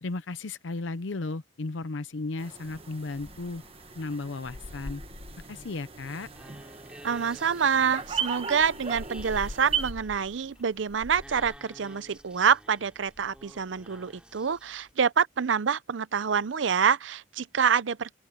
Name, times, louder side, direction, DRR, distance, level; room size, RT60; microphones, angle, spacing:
voice 1, 0.0-3.6 4.0-5.0 5.5-6.3, left 3 dB, 75° left, 0.7 m, -35 dB
sound 1, 2.4-11.6, left 2 dB, 20° left, 0.4 m, -46 dB
sound 2, 2.4-9.9, right 7 dB, 30° right, 1.2 m, -37 dB
sound 3, 6.2-14.9, right 1 dB, 5° right, 3.8 m, -52 dB
voice 2, 7.0-18.1, right 7 dB, 70° right, 0.6 m, -26 dB
open air
head